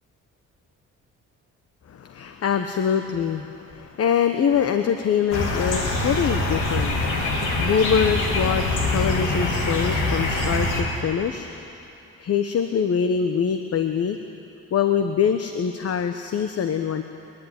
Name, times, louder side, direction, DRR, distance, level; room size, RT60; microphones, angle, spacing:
voice 1, 1.9-11.5 12.2-14.2 14.7-17.0, left 7 dB, 55° left, 7 dB, 1.1 m, -24 dB
sound 1, 5.3-10.8, left 2 dB, 90° left, 3.4 m, -24 dB
30.0 x 11.0 x 9.2 m, 2.9 s
cardioid pair, 90°, 30 cm